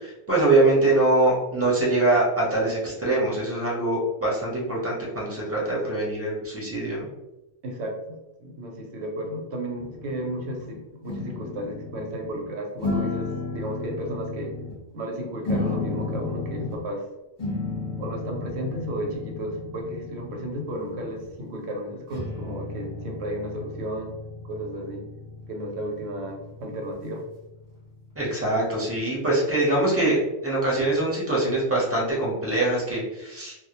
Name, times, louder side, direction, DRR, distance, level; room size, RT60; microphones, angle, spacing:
voice 1, 0.0-7.1 28.2-33.5, right 2 dB, 15° right, -5 dB, 0.6 m, -23 dB
voice 2, 7.6-14.5 14.9-17.1 18.0-24.1 24.5-25.0 25.5-27.2, right 1 dB, 90° right, 1 dB, 0.9 m, -33 dB
sound 1, 9.8-10.7 11.1-12.4 12.8-14.8 15.4-16.8 17.4-21.3 22.1-28.6, left 3 dB, 20° left, 0.7 m, -34 dB
2.2 x 2.0 x 2.8 m, 0.97 s
omnidirectional pair, 1.1 m